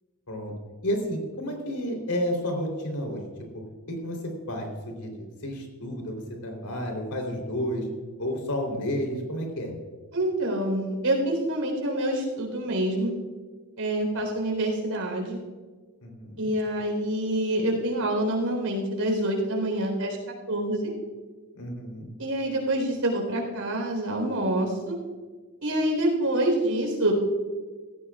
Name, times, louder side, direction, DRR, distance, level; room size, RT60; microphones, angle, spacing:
voice 1, 0.8-3.3 3.9-7.9 8.2-9.7 16.0-16.5 21.6-22.1, equal, 90° left, 2 dB, 3.7 m, -31 dB
voice 2, 10.1-13.1 13.8-15.4 16.4-20.2 20.5-20.9 22.2-25.0 25.6-27.1, right 1 dB, 75° right, 1 dB, 4.2 m, -26 dB
17.5 x 15.0 x 2.5 m, 1.4 s
head